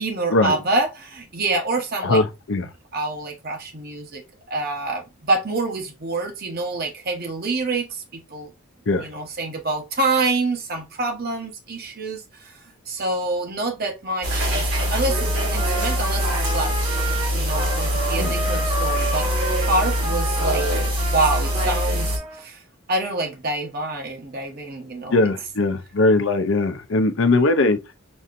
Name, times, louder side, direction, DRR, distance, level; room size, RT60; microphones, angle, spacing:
voice 1, 0.0-2.2 2.9-8.5 9.0-12.6 12.9-19.3 19.6-20.7 21.1-22.6 22.9-25.3, right 2 dB, 45° right, 1.0 m, -26 dB
voice 2, 2.0-2.7 8.9-9.1 18.2-18.3 25.1-27.8, left 2 dB, 60° left, 0.6 m, -20 dB
sound 1, 14.2-22.2, equal, 80° right, 2.6 m, -23 dB
Trumpet, 15.1-22.4, right 2 dB, 25° right, 0.7 m, -31 dB
6.1 x 2.7 x 2.5 m
head